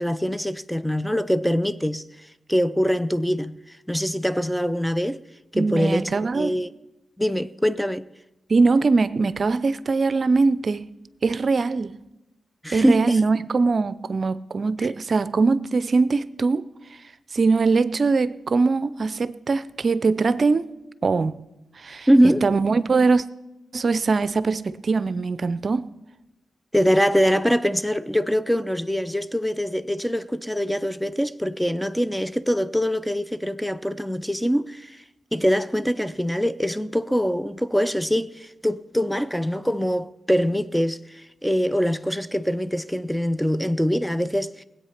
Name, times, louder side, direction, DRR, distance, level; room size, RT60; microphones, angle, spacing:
voice 1, 0.0-2.0 2.5-3.6 3.9-5.2 5.5-6.7 7.2-8.1 12.6-13.2 14.8-14.9 22.1-22.5 26.7-35.0 35.3-44.6, equal, ahead, 0.5 m, -23 dB
voice 2, 5.5-6.5 8.5-10.8 11.2-11.9 12.7-16.7 17.3-20.7 21.0-21.4 21.8-22.1 22.4-23.2 23.7-25.9, right 4 dB, 55° right, 0.5 m, -22 dB
18.5 x 8.4 x 5.8 m
cardioid pair, 50°, 0 cm